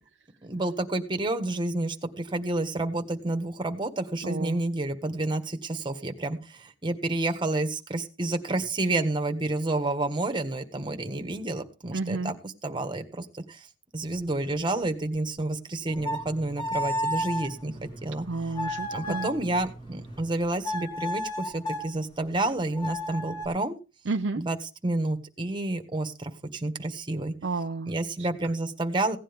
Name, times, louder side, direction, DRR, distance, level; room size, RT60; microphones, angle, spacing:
voice 1, 0.4-13.6 13.9-18.3 18.9-23.7 24.3-24.6 24.8-27.3 27.9-29.2, right 2 dB, 25° right, 7 dB, 1.5 m, -29 dB
voice 2, 4.2-4.6 11.9-12.3 18.3-19.3 24.1-24.4 27.4-27.9 28.2-28.3, right 3 dB, 65° right, 5 dB, 0.6 m, -31 dB
sound 1, 15.9-20.3 20.6-21.9 22.7-23.5, equal, 25° left, 2.7 m, -33 dB
17.0 x 10.0 x 3.6 m, 0.30 s
head